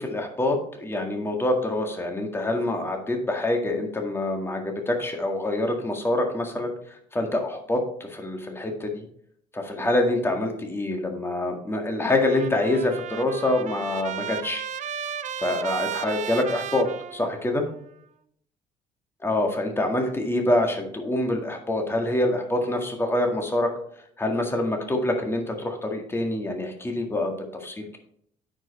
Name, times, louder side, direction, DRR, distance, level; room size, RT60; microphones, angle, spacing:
voice 1, 0.0-6.7 7.1-9.1 9.5-14.6 15.4-17.6 19.2-23.7 24.2-27.3 27.6-28.0, left 1 dB, 15° left, 2 dB, 1.8 m, -26 dB
Trumpet, 12.1-17.7, right 9 dB, 45° right, 0.6 m, -34 dB
9.3 x 5.4 x 4.1 m, 0.66 s
cardioid pair, 110°, 17 cm